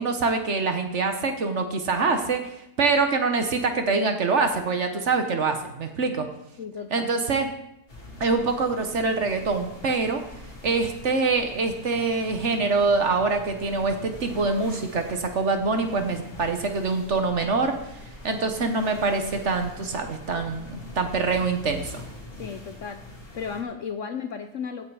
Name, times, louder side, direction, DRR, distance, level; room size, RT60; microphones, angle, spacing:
voice 1, 0.0-2.5 2.8-6.3 6.9-7.5 8.2-10.2 10.6-17.8 18.2-22.0, right 4 dB, 50° right, 6 dB, 1.2 m, -25 dB
voice 2, 6.6-7.1 22.4-23.1 23.3-24.9, left 6 dB, 60° left, 8 dB, 0.8 m, -34 dB
sound 1, 7.9-23.6, left 1 dB, 35° left, 2.3 m, -43 dB
15.5 x 5.6 x 4.8 m, 0.83 s
omnidirectional pair, 1.8 m